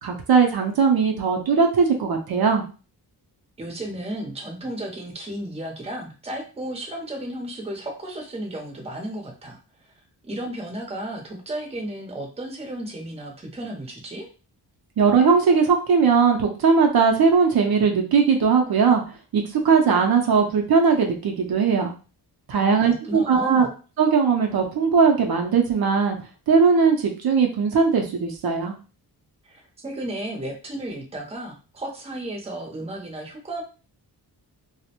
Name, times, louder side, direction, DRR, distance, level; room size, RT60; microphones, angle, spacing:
voice 1, 0.0-2.6 15.0-19.0 19.3-21.9 22.5-23.7 24.0-26.2 26.5-28.7, right 5 dB, 60° right, 2 dB, 0.6 m, -19 dB
voice 2, 3.6-9.6 9.8-9.9 10.2-14.3 22.5-23.7 29.4-33.6, right 1 dB, 15° right, 0 dB, 0.6 m, -34 dB
2.5 x 2.0 x 2.8 m, 0.35 s
wide cardioid pair, 115°, 41 cm